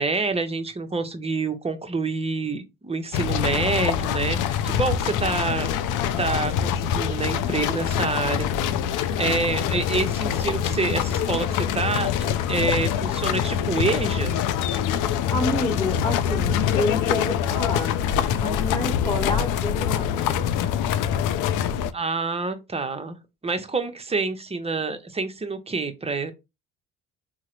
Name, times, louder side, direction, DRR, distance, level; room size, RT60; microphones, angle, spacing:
voice 1, 0.0-5.7 6.2-8.5 8.9-14.4 21.9-23.2 23.4-26.3, right 3 dB, 15° right, 0.6 m, -27 dB
sound 1, 3.1-21.9, left 9 dB, 60° left, 0.5 m, -24 dB
voice 2, 15.3-18.0 18.3-20.6, left 2 dB, 15° left, 1.2 m, -28 dB
3.6 x 2.1 x 2.9 m
supercardioid pair, 70°, 36 cm